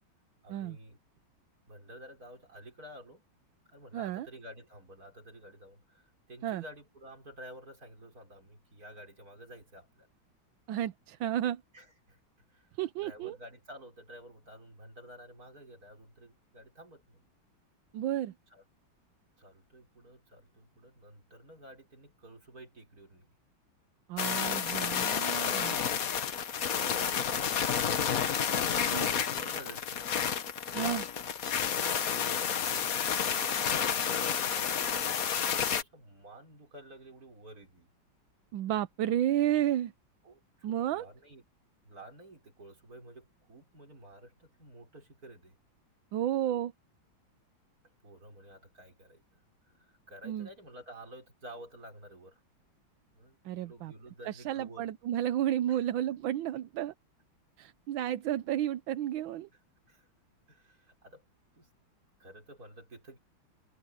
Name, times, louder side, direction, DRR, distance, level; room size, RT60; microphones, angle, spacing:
voice 1, 0.4-1.0 1.7-3.2 3.7-10.1 11.7-12.2 12.5-12.7 13.0-17.2 18.5-18.6 19.4-23.3 25.5-26.0 26.4-30.1 32.0-34.7 35.3-37.9 40.2-41.4 41.8-45.6 48.0-49.4 49.7-52.4 53.1-54.9 55.7-55.8 59.5-59.6 59.9-60.1 60.5-61.3 61.5-61.7 62.2-63.2, right 1 dB, 45° right, 6.3 m, -52 dB
voice 2, 3.9-4.3 6.4-6.6 10.7-11.6 12.8-13.4 17.9-18.3 24.1-25.8 28.9-29.1 30.7-31.1 38.5-39.9 40.6-41.1 46.1-46.7 50.2-50.5 53.4-53.9 54.2-56.9 57.6-59.5, right 12 dB, 75° right, 1.4 m, -32 dB
sound 1, 24.2-35.8, left 7 dB, 50° left, 1.4 m, -30 dB
omnidirectional pair, 2.2 m